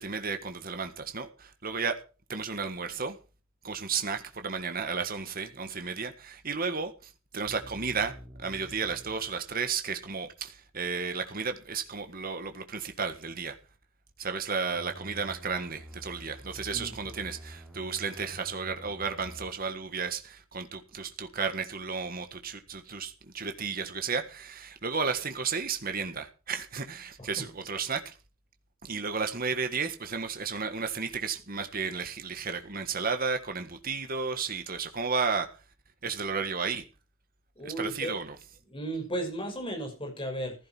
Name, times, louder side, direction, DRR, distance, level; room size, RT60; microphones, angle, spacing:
voice 1, 0.0-2.0 2.3-3.2 3.6-13.6 14.2-28.1 28.8-35.5 36.0-36.8 37.6-38.3, right 5 dB, 45° right, 1.6 m, -33 dB
sound 1, 7.4-9.4 14.6-19.5, equal, 5° right, 5.0 m, -47 dB
voice 2, 37.6-38.2 38.7-40.5, right 1 dB, 25° left, 5.8 m, -35 dB
15.5 x 12.0 x 4.5 m
head